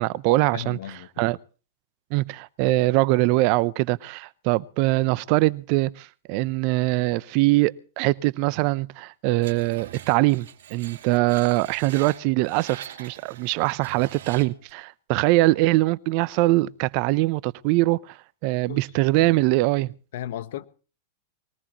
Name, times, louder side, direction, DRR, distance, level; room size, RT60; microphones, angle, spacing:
voice 1, 0.0-0.8 1.2-1.4 2.1-18.2 18.4-19.9, right 20 dB, 50° right, 0.7 m, -22 dB
voice 2, 0.5-1.3 18.7-18.8 19.2-19.5 20.1-20.7, left 12 dB, 65° left, 1.2 m, -36 dB
Screech, 9.4-14.7, right 10 dB, 65° right, 2.6 m, -43 dB
21.5 x 18.5 x 3.1 m
hypercardioid pair, 100°, 0 cm